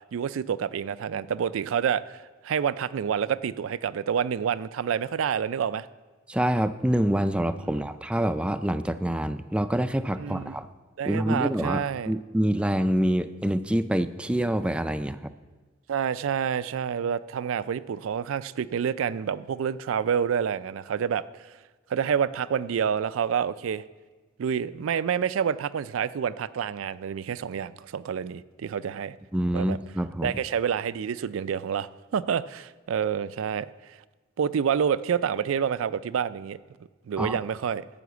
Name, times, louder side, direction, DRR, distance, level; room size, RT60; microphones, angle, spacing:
voice 1, 0.1-5.9 10.2-10.6 11.0-12.1 15.9-21.5 21.9-23.8 24.4-29.2 29.5-29.8 30.2-33.7 34.4-36.6 37.1-37.8, right 7 dB, 90° right, 16 dB, 0.4 m, -28 dB
voice 2, 6.3-10.7 11.0-15.2 29.3-30.3 37.2-37.4, right 1 dB, 5° right, 11 dB, 0.3 m, -26 dB
11.0 x 5.8 x 8.1 m, 1.3 s
head